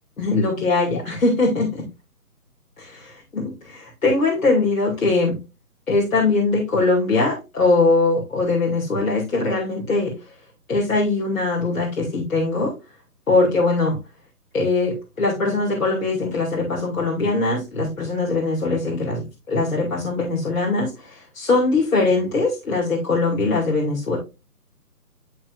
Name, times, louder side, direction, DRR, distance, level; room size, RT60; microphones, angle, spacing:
voice 1, 0.2-1.9 2.8-5.4 5.9-10.1 10.7-12.7 13.3-14.0 14.5-24.2, left 3 dB, 60° left, -3 dB, 2.7 m, -21 dB
11.0 x 5.0 x 2.6 m, 0.27 s
hypercardioid pair, 180°, 47 cm